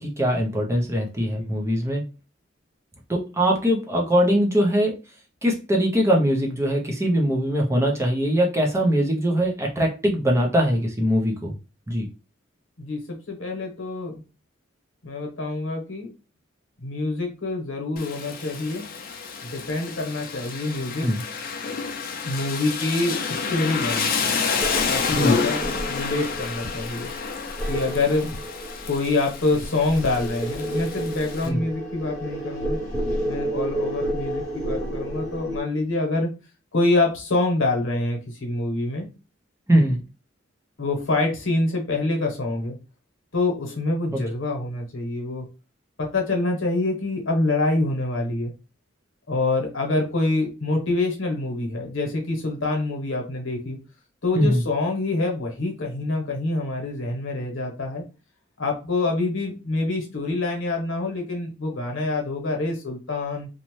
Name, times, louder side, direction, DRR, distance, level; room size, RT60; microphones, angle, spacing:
voice 1, 0.0-2.0 3.1-5.0 5.4-11.6 11.9-12.1 21.0-21.2 25.2-25.4 31.4-31.6 39.7-40.0 44.1-44.2 54.4-54.6, equal, 15° right, 0 dB, 0.5 m, -22 dB
voice 2, 1.2-1.6 12.8-14.2 15.0-16.1 16.8-18.8 19.4-21.1 22.2-24.3 24.9-27.1 27.7-28.3 28.9-32.8 33.3-36.3 36.7-39.1 39.7-40.0 40.8-42.8 43.3-45.5 46.0-48.5 49.3-53.8 54.2-58.0 58.6-63.5, left 2 dB, 80° left, 1 dB, 0.9 m, -26 dB
Rain, 18.0-31.5, left 5 dB, 45° left, 0.4 m, -29 dB
sound 1, 24.6-35.6, right 1 dB, 5° left, 1.0 m, -31 dB
2.6 x 2.1 x 3.0 m, 0.31 s
head